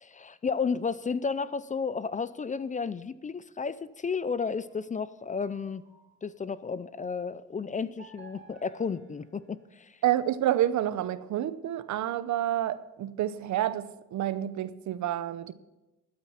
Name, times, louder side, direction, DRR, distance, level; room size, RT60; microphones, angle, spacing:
voice 1, 0.0-5.8 6.2-10.0, left 5 dB, 25° left, 17 dB, 0.5 m, -32 dB
sound 1, 4.6-6.7 8.0-10.2, right 4 dB, 40° right, 3.1 m, -56 dB
voice 2, 10.0-15.5, right 12 dB, 70° right, 15 dB, 0.7 m, -29 dB
13.0 x 8.6 x 5.8 m, 1.0 s
cardioid pair, 90°, 30 cm